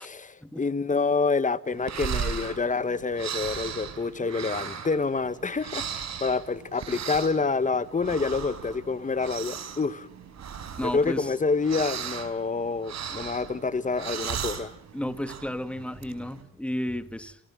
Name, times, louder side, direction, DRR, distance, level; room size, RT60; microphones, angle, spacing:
voice 1, 0.0-10.1 10.8-14.7, left 4 dB, 25° left, 1.3 m, -27 dB
sound 1, 1.7-16.4, right 7 dB, 60° right, 4.9 m, -37 dB
voice 2, 10.8-11.3 14.9-17.4, left 1 dB, 5° left, 2.1 m, -33 dB
29.5 x 28.5 x 6.2 m
cardioid pair, 90°, 30 cm